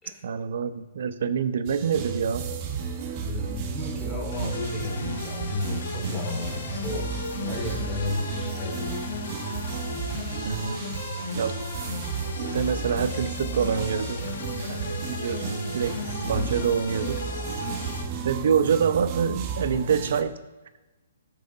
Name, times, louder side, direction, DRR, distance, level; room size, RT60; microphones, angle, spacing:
voice 1, 0.2-2.4 7.4-7.6 10.4-11.1 11.3-11.6 12.4-14.2 14.7-16.0 16.3-17.2 18.2-20.3, right 7 dB, 65° right, 11 dB, 0.7 m, -26 dB
sound 1, 1.6-20.2, right 5 dB, 30° right, 1.1 m, -33 dB
voice 2, 3.1-7.1 7.4-9.1 16.3-16.6, left 2 dB, 15° left, -2 dB, 2.6 m, -33 dB
sound 2, 4.3-18.0, left 4 dB, 65° left, 1.5 m, -36 dB
13.0 x 4.8 x 3.9 m, 1.2 s
hypercardioid pair, 150°, 0 cm